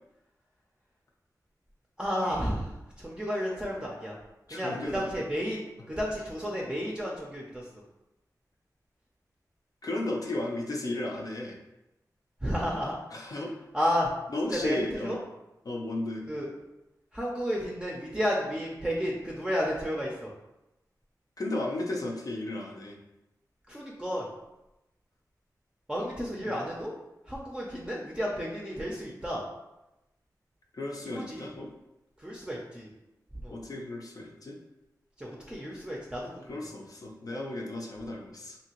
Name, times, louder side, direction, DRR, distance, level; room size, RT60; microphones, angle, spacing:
voice 1, 2.0-4.2 4.5-7.8 12.4-12.9 13.7-14.1 14.5-15.2 16.3-16.5 17.1-20.3 23.7-24.3 25.9-26.9 27.3-29.4 31.0-31.5 32.2-32.9 33.4-33.6 35.2-36.6, equal, 10° right, -3 dB, 0.5 m, -32 dB
voice 2, 4.5-5.2 9.8-11.6 13.1-13.5 14.3-15.2 15.6-16.2 21.4-23.0 26.5-26.6 30.7-31.7 33.5-34.6 36.5-38.6, left 1 dB, 60° left, -1 dB, 0.5 m, -34 dB
2.8 x 2.6 x 2.9 m, 0.93 s
wide cardioid pair, 65°, 7 cm